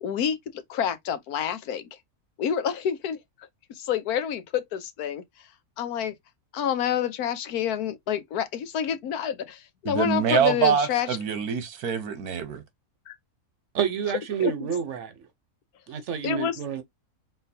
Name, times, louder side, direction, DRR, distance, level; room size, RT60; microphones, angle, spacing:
voice 1, 0.0-1.8 2.4-3.2 3.7-5.2 5.8-6.1 6.5-11.1 13.1-13.2 14.4-14.5 16.2-16.6, left 9 dB, 90° left, 1.3 m, -28 dB
voice 2, 9.8-12.6, right 7 dB, 90° right, 1.4 m, -25 dB
voice 3, 13.7-15.3 15.9-16.8, right 8 dB, 60° right, 1.0 m, -29 dB
4.4 x 3.8 x 2.7 m
omnidirectional pair, 1.5 m